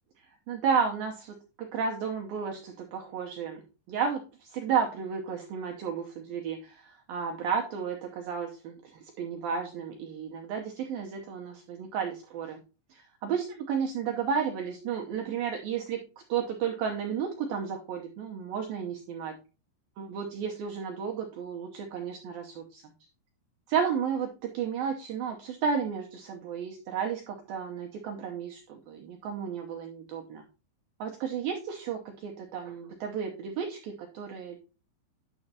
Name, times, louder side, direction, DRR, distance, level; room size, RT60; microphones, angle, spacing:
voice 1, 0.5-3.6 3.9-4.2 4.5-12.6 12.9-16.0 16.3-19.3 20.0-22.8 23.7-30.4 31.0-34.6, right 6 dB, 85° right, 1 dB, 2.1 m, -32 dB
9.8 x 7.0 x 2.8 m, 0.33 s
omnidirectional pair, 5.4 m